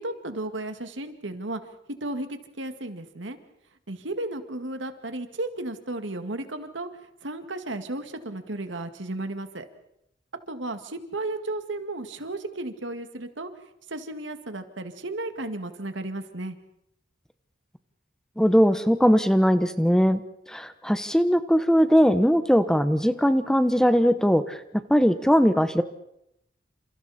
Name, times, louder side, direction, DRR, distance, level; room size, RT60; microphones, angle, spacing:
voice 1, 0.0-1.6 2.0-3.4 3.9-6.9 7.2-9.7 10.5-13.5 13.9-16.6, right 2 dB, 85° right, 8 dB, 2.1 m, -34 dB
voice 2, 18.4-20.2 20.5-24.6 24.9-25.8, equal, 5° left, 11 dB, 0.9 m, -20 dB
29.0 x 27.5 x 4.3 m, 0.81 s
head